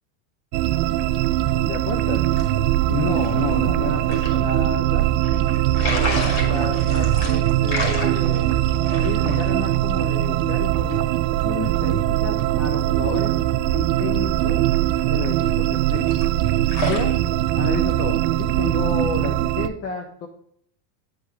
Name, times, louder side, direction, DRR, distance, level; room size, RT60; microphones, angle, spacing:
sound 1, 0.5-19.7, right 13 dB, 80° right, 0.6 m, -21 dB
voice 1, 1.7-2.3 2.9-5.0 6.4-8.6 9.0-11.1 11.4-13.3 13.7-14.6 15.1-16.2 16.8-17.2 17.5-20.3, left 5 dB, 30° left, 3 dB, 0.7 m, -30 dB
sound 2, 1.9-17.1, left 1 dB, 55° left, 2.3 m, -34 dB
8.9 x 3.6 x 4.5 m, 0.67 s
supercardioid pair, 165°, 48 cm